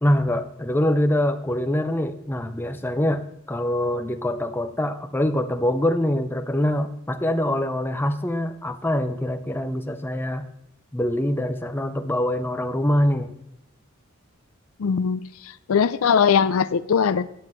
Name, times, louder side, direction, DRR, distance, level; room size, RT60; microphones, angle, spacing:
voice 1, 0.0-10.4 10.9-13.3, left 1 dB, 10° left, 8 dB, 0.6 m, -24 dB
voice 2, 14.8-17.3, left 6 dB, 80° left, 16 dB, 0.4 m, -21 dB
15.0 x 9.6 x 3.1 m, 0.79 s
head